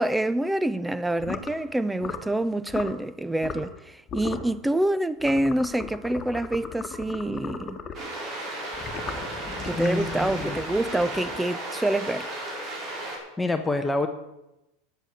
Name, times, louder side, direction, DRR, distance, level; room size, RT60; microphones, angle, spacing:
voice 1, 0.0-7.8 9.6-12.3, right 1 dB, 5° right, 0.6 m, -26 dB
sound 1, 1.2-1.5 2.0-2.3 2.7-3.0 3.4-3.8 4.1-4.5 5.2-8.1 8.7-11.6, left 5 dB, 30° left, 1.5 m, -37 dB
sound 2, 7.9-13.2, right 1 dB, 40° right, 4.9 m, -34 dB
voice 2, 9.7-10.6 13.4-14.1, left 2 dB, 10° left, 0.9 m, -27 dB
9.1 x 8.0 x 8.4 m
hypercardioid pair, 100°, 0 cm